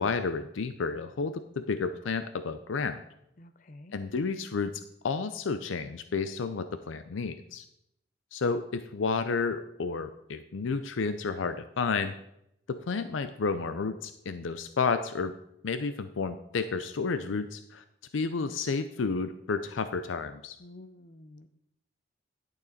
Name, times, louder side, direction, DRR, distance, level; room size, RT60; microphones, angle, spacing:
voice 1, 0.0-3.0 3.9-4.7 5.0-7.6 8.3-12.1 12.7-15.3 15.6-17.8 18.1-20.6, left 4 dB, 85° left, 10 dB, 0.5 m, -31 dB
voice 2, 3.4-4.0 20.6-21.5, left 1 dB, 45° left, 11 dB, 0.6 m, -50 dB
11.5 x 6.6 x 4.1 m, 0.78 s
head